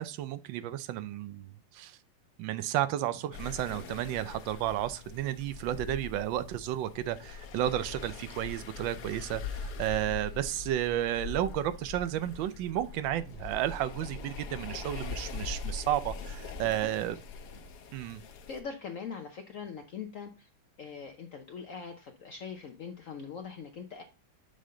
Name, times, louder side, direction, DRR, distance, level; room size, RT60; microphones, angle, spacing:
voice 1, 0.0-2.0 2.4-17.2 17.9-18.2, right 12 dB, 75° right, 1.2 m, -32 dB
sound 1, 3.3-18.6, left 4 dB, 60° left, 1.2 m, -42 dB
voice 2, 18.5-20.5 20.8-24.0, left 6 dB, 85° left, 0.7 m, -42 dB
7.4 x 5.3 x 3.7 m
omnidirectional pair, 2.3 m